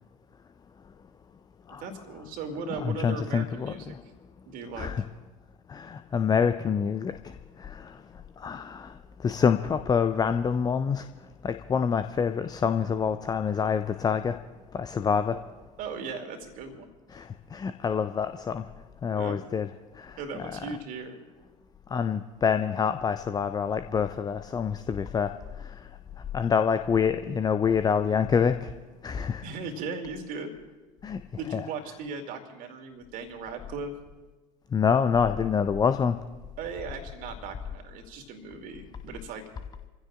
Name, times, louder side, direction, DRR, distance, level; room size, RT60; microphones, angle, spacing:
voice 1, 1.8-3.9 4.5-4.9 15.8-16.9 19.1-19.4 20.2-21.2 29.4-30.5 31.4-33.9 36.6-39.5, right 4 dB, 50° right, 5 dB, 2.4 m, -37 dB
voice 2, 2.8-4.0 4.8-5.0 5.7-14.4 14.7-15.4 17.1-18.7 19.0-19.7 19.9-20.6 21.9-28.7 29.0-29.4 31.0-31.2 31.5-31.6 34.7-36.2, left 6 dB, 20° left, 10 dB, 0.5 m, -27 dB
28.5 x 16.0 x 2.5 m, 1.3 s
figure-of-eight pair, 65°, 18 cm